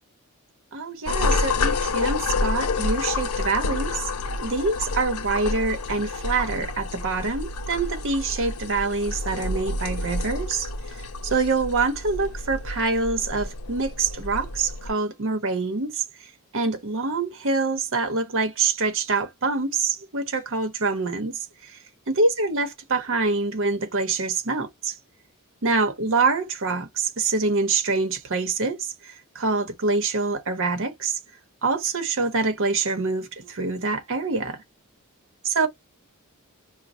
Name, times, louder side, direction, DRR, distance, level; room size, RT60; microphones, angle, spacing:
voice 1, 0.7-4.1 4.4-10.7 11.2-16.0 16.5-21.8 22.1-24.9 25.6-31.2 31.6-34.6 35.4-35.7, right 3 dB, 60° right, 0.9 m, -25 dB
sound 1, 1.0-14.9, left 3 dB, 75° left, 0.6 m, -29 dB
5.1 x 2.2 x 2.7 m
head